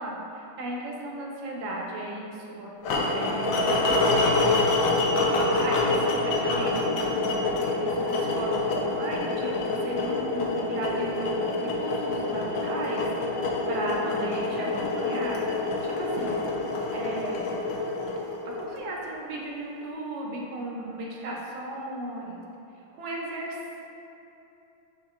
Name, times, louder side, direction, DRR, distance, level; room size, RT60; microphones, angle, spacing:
voice 1, 0.0-2.7 3.1-4.8 5.3-13.0 13.7-15.4 15.8-16.4 16.9-17.6 18.5-22.4 23.0-23.8, right 1 dB, 70° right, -3 dB, 1.4 m, -35 dB
sound 1, 2.8-19.0, left 2 dB, 75° left, 1.2 m, -26 dB
7.1 x 2.7 x 2.4 m, 2.8 s
omnidirectional pair, 2.3 m